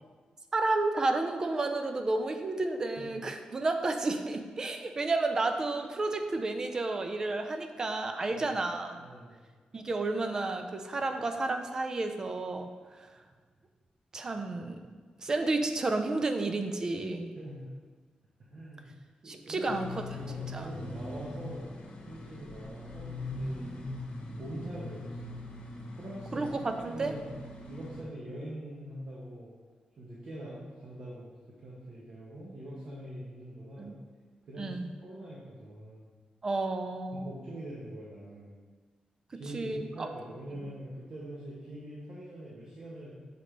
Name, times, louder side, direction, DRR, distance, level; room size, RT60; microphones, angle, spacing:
voice 1, 0.5-9.0 9.7-12.7 13.0-13.1 14.1-14.8 15.2-17.4 19.3-19.9 20.5-20.7 26.3-27.1 33.8-33.9 34.6-34.9 36.4-37.3 39.3-40.1, right 2 dB, 25° right, 6 dB, 0.5 m, -31 dB
voice 2, 9.0-9.4 17.4-17.7 18.5-18.9 19.2-21.7 22.1-23.7 24.4-25.4 25.9-27.3 27.7-29.5 30.0-33.9 34.4-34.7 35.0-36.1 37.1-38.5 39.3-43.1, right 1 dB, 50° right, -6 dB, 1.1 m, -43 dB
sound 1, 19.7-28.0, left 2 dB, 60° left, 1.0 m, -41 dB
6.7 x 5.1 x 3.3 m, 1.4 s
wide cardioid pair, 180°, 2 cm